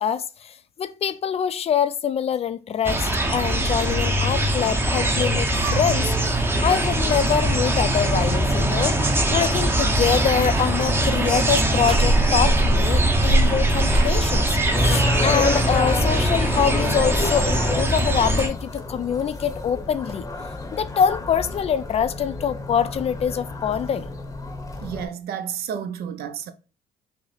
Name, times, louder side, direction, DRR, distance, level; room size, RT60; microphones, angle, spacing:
voice 1, 0.0-6.1 6.6-9.0 9.3-20.3 20.7-24.1, left 8 dB, 40° left, 0.4 m, -24 dB
sound 1, 2.8-18.5, right 1 dB, 15° right, 0.7 m, -21 dB
sound 2, 10.6-11.4 11.8-12.7 13.9-14.7, right 3 dB, 35° right, 1.1 m, -38 dB
sound 3, 14.7-25.1, left 2 dB, 20° left, 0.8 m, -29 dB
voice 2, 24.8-26.5, right 8 dB, 65° right, 0.6 m, -31 dB
5.5 x 2.1 x 4.0 m
cardioid pair, 110°, 17 cm